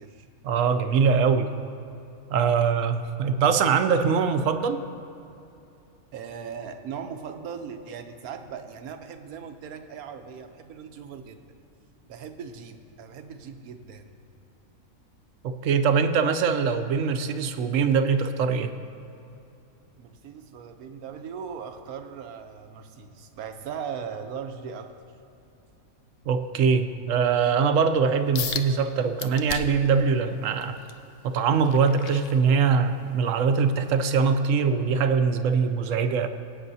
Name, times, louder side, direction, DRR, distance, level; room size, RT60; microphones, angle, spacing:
voice 1, 0.4-1.5 2.3-4.8 15.4-18.7 26.3-30.8 31.2-36.3, right 6 dB, 70° right, 9 dB, 0.9 m, -22 dB
voice 2, 6.1-11.4 12.1-14.2 20.0-24.9, right 7 dB, 90° right, 7 dB, 1.2 m, -39 dB
sound 1, 28.3-28.7 29.2-29.9 30.4-32.9 33.4-33.7 34.2-34.3, left 8 dB, 60° left, 0.6 m, -35 dB
22.5 x 8.4 x 2.7 m, 2.8 s
omnidirectional pair, 1.5 m